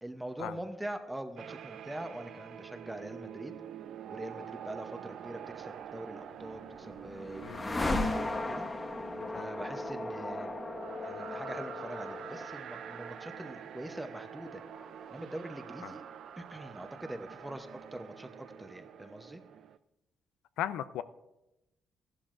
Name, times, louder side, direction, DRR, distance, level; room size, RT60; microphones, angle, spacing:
voice 1, 0.0-3.5 4.1-8.7 9.3-10.5 11.0-14.6 15.1-16.0 16.4-19.4, right 1 dB, 10° right, 7 dB, 0.8 m, -43 dB
sound 1, 1.4-19.8, right 9 dB, 70° right, 0.4 m, -47 dB
sound 2, 6.3-16.3, left 2 dB, 25° left, 1.0 m, -38 dB
voice 2, 20.6-21.0, left 11 dB, 90° left, 14 dB, 0.4 m, -36 dB
14.0 x 12.0 x 2.5 m, 0.95 s
cardioid pair, 90°, 0 cm